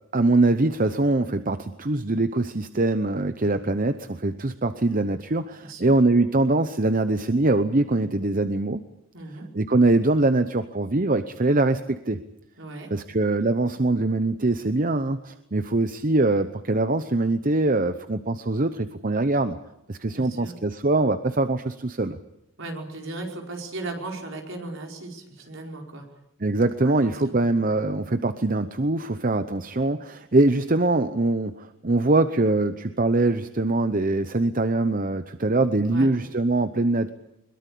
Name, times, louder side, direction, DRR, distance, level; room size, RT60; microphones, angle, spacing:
voice 1, 0.1-8.8 9.5-12.2 12.9-19.6 19.9-22.2 26.4-37.1, right 2 dB, 40° right, 10 dB, 0.8 m, -23 dB
voice 2, 5.6-5.9 9.1-9.5 12.6-12.9 20.1-20.5 22.6-26.0 26.8-27.4 27.7-27.8 35.9-36.1, right 2 dB, 60° right, 1 dB, 5.0 m, -37 dB
22.0 x 22.0 x 8.5 m, 0.86 s
head